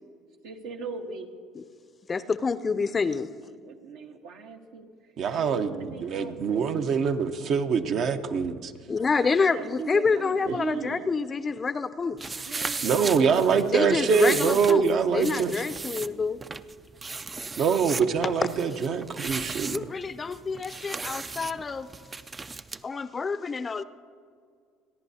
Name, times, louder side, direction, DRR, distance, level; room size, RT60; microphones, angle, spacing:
voice 1, 0.4-1.3 3.4-4.9 5.3-7.0 9.0-11.1 12.4-14.6, right 5 dB, 70° right, 2 dB, 1.3 m, -40 dB
voice 2, 2.1-3.3 8.9-12.4 13.7-16.4 19.7-21.9 22.8-23.8, left 4 dB, 30° left, 14 dB, 0.5 m, -28 dB
voice 3, 5.2-8.7 10.5-10.6 12.8-15.5 17.6-19.8, right 6 dB, 55° right, 7 dB, 0.9 m, -24 dB
sound 1, 12.2-22.8, right 3 dB, 25° right, 0.4 m, -36 dB
29.0 x 10.5 x 2.8 m, 2.1 s
hypercardioid pair, 75°, 0 cm